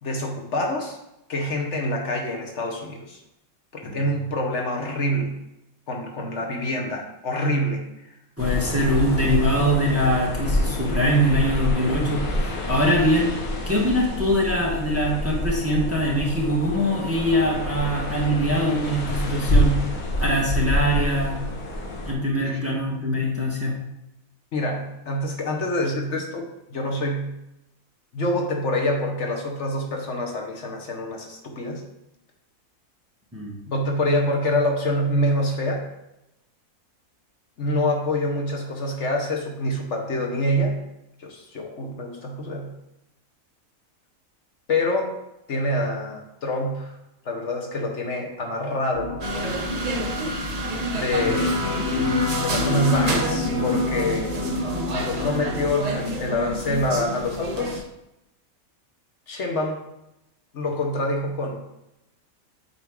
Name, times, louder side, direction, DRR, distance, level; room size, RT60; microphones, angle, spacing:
voice 1, 0.0-1.0 1.3-3.2 3.7-5.3 5.9-7.8 22.4-22.6 24.5-27.3 28.1-31.8 33.7-35.9 37.6-40.8 41.2-42.7 44.7-45.2 45.5-47.0 47.2-49.1 50.9-51.5 52.4-54.3 54.9-57.8 59.3-59.8 60.5-61.6, left 1 dB, 60° left, 1 dB, 1.2 m, -26 dB
sound 1, 8.4-22.1, left 1 dB, 85° left, 1.7 m, -27 dB
voice 2, 8.4-13.3 13.7-19.8 20.2-21.4 22.1-23.7 33.3-33.5 51.3-51.4, equal, 10° right, -3 dB, 1.0 m, -23 dB
sound 2, 48.9-55.7, left 2 dB, 45° left, 2.9 m, -28 dB
sound 3, 49.2-57.8, right 1 dB, 35° right, 0.7 m, -29 dB
7.9 x 4.4 x 3.6 m, 0.88 s
omnidirectional pair, 1.4 m